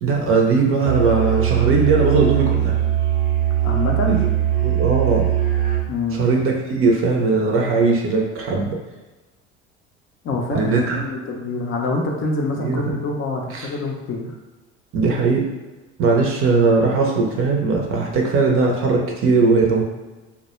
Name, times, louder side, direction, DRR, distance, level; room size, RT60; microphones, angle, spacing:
voice 1, 0.0-2.8 4.0-4.2 4.6-5.2 6.1-8.8 10.5-11.0 12.6-13.0 13.5-13.7 14.9-15.5 16.0-19.8, right 4 dB, 40° right, 0 dB, 0.6 m, -19 dB
Musical instrument, 0.8-5.9, right 11 dB, 80° right, 0.8 m, -20 dB
voice 2, 3.6-4.2 5.9-6.3 10.2-14.3, left 2 dB, 35° left, 0 dB, 0.5 m, -25 dB
2.2 x 2.0 x 2.9 m, 1.2 s
hypercardioid pair, 65°, 35 cm